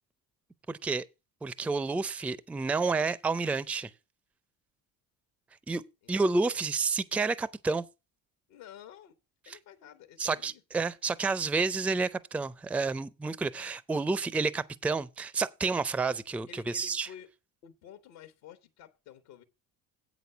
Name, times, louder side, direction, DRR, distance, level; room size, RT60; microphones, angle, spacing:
voice 1, 0.7-1.1 1.4-3.9 5.7-5.8 6.1-7.9 9.5-9.6 10.2-17.1, right 4 dB, 5° right, 0.4 m, -30 dB
voice 2, 8.5-9.1 9.5-10.6 13.3-13.7 16.5-17.3 17.6-19.4, left 9 dB, 75° left, 1.2 m, -51 dB
8.1 x 6.2 x 5.5 m
hypercardioid pair, 65°, 50 cm